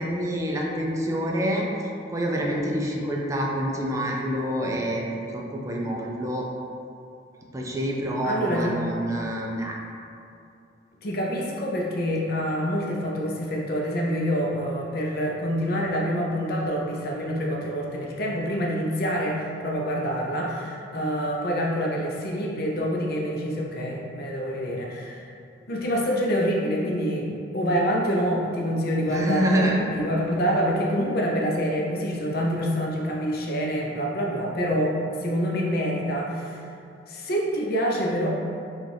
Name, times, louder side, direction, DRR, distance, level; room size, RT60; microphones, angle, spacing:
voice 1, 0.0-1.6 2.1-5.0 5.3-6.5 7.5-9.8 29.0-29.9, equal, 20° right, -2 dB, 0.4 m, -27 dB
voice 2, 8.2-8.8 11.0-25.3 25.7-36.6 37.1-38.3, equal, 60° left, -2 dB, 0.6 m, -26 dB
4.9 x 2.5 x 3.3 m, 2.5 s
head